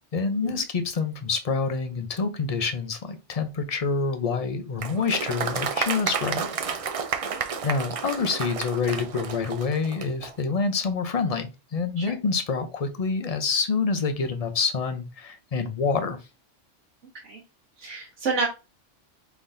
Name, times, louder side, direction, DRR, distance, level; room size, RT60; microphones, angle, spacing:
voice 1, 0.1-6.5 7.6-16.2, left 4 dB, 40° left, 7 dB, 0.6 m, -27 dB
Applause, 4.8-10.3, right 6 dB, 55° right, 0.3 m, -31 dB
voice 2, 17.8-18.5, right 4 dB, 75° right, -3 dB, 1.5 m, -30 dB
4.6 x 3.8 x 2.6 m, 0.29 s
omnidirectional pair, 1.2 m